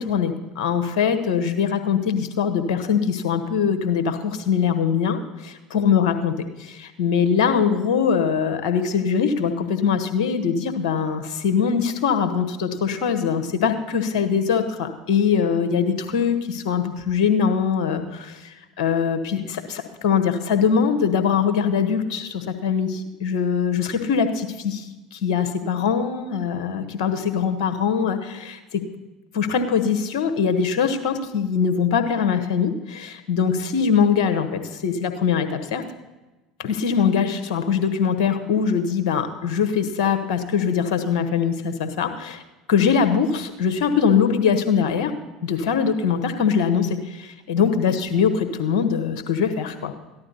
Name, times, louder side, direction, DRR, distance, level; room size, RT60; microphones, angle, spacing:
voice 1, 0.0-28.8 29.3-35.8 36.6-42.4 42.7-45.1 45.4-49.9, left 6 dB, 65° left, 7 dB, 1.4 m, -22 dB
14.0 x 11.5 x 4.0 m, 1.1 s
hypercardioid pair, 70°, 3 cm